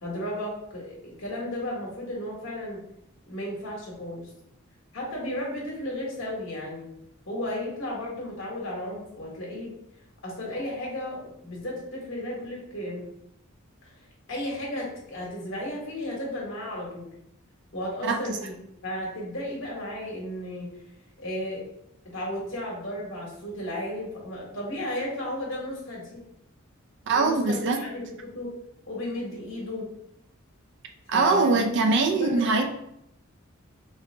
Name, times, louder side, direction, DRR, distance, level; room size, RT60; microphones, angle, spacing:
voice 1, 0.0-2.8 3.3-4.3 4.9-6.9 7.3-9.8 10.2-13.1 13.8-13.9 14.3-17.1 17.7-18.6 18.8-20.7 21.2-21.7 22.1-26.2 27.1-28.5 28.9-29.9 31.1-32.7, left 1 dB, 65° left, -3 dB, 1.2 m, -34 dB
voice 2, 18.0-18.4 27.1-27.8 31.1-32.7, right 3 dB, 60° right, 3 dB, 0.4 m, -22 dB
3.7 x 3.3 x 3.3 m, 0.78 s
head